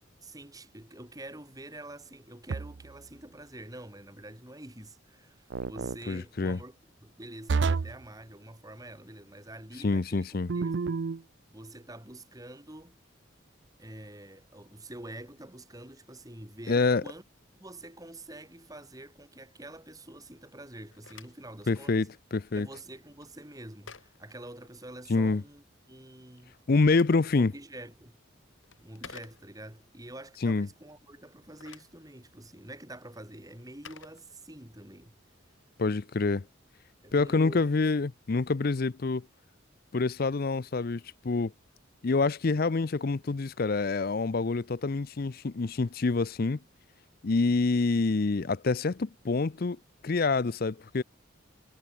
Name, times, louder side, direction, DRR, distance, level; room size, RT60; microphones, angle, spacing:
voice 1, 0.2-11.0 11.5-13.0 13.8-17.2 17.6-22.1 22.5-26.6 27.3-28.2 28.8-35.2 36.2-36.3 37.0-37.7, right 1 dB, 20° right, 4.6 m, -47 dB
sound 1, 2.5-3.0 5.5-6.0 7.5-8.0 10.5-11.2, right 4 dB, 60° right, 0.5 m, -29 dB
voice 2, 6.1-6.6 9.8-10.5 16.7-17.0 21.7-22.7 25.1-25.4 26.7-27.5 30.4-30.7 35.8-36.4 37.1-39.3 39.9-41.5 42.0-46.6 47.2-49.8 50.0-51.0, left 3 dB, 50° left, 0.6 m, -27 dB
Telephone, 20.7-25.2 26.4-29.9 31.3-34.9, left 6 dB, 80° left, 2.4 m, -54 dB
head